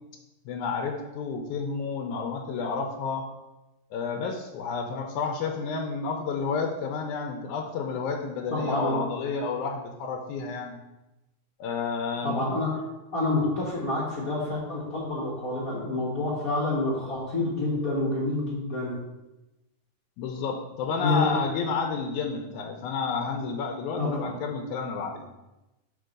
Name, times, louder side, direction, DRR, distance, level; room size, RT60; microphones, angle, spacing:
voice 1, 0.5-3.3 3.9-10.8 11.6-12.5 20.2-25.3, left 5 dB, 85° left, 1 dB, 2.0 m, -30 dB
voice 2, 8.5-9.0 12.2-12.7 13.1-18.9 21.0-21.3 24.0-24.3, left 2 dB, 45° left, -6 dB, 1.2 m, -28 dB
5.9 x 4.6 x 6.4 m, 1.0 s
omnidirectional pair, 3.5 m